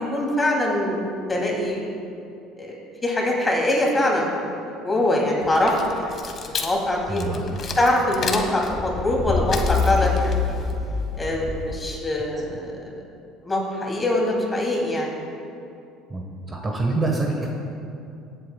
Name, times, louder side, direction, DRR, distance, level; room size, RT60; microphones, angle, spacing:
voice 1, 0.0-1.9 2.6-2.8 3.0-6.1 6.5-7.2 7.8-10.6 11.2-12.9 13.4-15.1, left 1 dB, 20° left, -1 dB, 2.5 m, -23 dB
sound 1, 5.4-12.0, left 5 dB, 45° left, 1.1 m, -27 dB
voice 2, 7.1-7.6 16.1-16.2 16.5-17.5, right 2 dB, 25° right, 1 dB, 1.2 m, -25 dB
18.0 x 8.1 x 2.2 m, 2.6 s
supercardioid pair, 80°, 0 cm